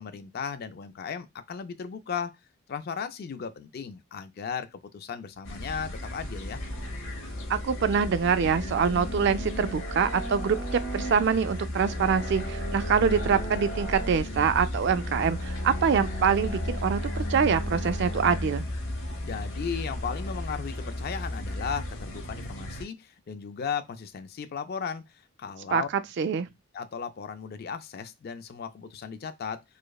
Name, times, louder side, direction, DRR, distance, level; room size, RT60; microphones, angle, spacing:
voice 1, 0.0-2.4 2.7-6.6 19.2-25.9 26.7-29.6, left 6 dB, 50° left, 0.4 m, -36 dB
sound 1, 5.4-22.8, left 1 dB, 75° left, 1.0 m, -33 dB
voice 2, 7.5-10.6 10.9-18.6 25.7-25.8 26.2-26.5, right 6 dB, 55° right, 0.3 m, -25 dB
4.8 x 2.1 x 2.3 m
head